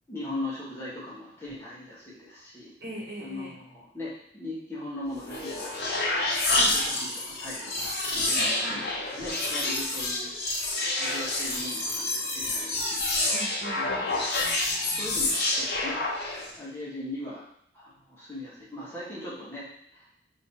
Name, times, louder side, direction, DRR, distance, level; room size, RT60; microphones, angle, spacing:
voice 1, 0.1-2.7 3.2-10.3 10.6-13.0 13.8-14.0 14.8-16.0 16.6-17.4 17.7-20.1, left 1 dB, 15° left, -9 dB, 1.4 m, -40 dB
voice 2, 2.8-3.6 6.5-6.7 8.3-8.8 13.3-15.1, equal, 65° right, -3 dB, 1.1 m, -42 dB
sound 1, 5.1-16.6, left 2 dB, 65° left, 1.1 m, -28 dB
6.1 x 2.9 x 2.9 m, 0.70 s
head